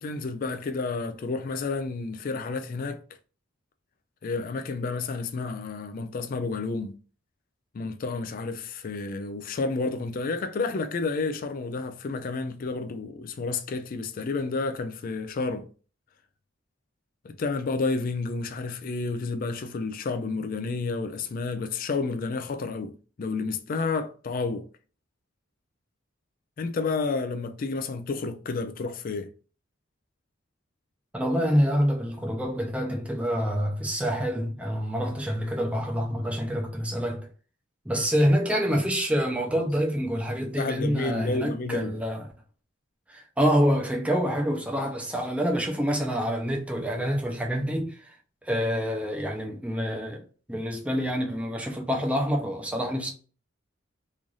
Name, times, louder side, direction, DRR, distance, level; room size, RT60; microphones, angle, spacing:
voice 1, 0.0-3.0 4.2-7.0 7.7-15.7 17.2-24.7 26.6-29.3 39.6-39.7 40.6-41.9, left 3 dB, 45° left, 0.3 m, -30 dB
voice 2, 31.1-37.3 37.9-42.3 43.1-48.0 48.5-50.2 50.5-53.1, equal, 5° right, 0.6 m, -26 dB
3.1 x 2.5 x 3.8 m
head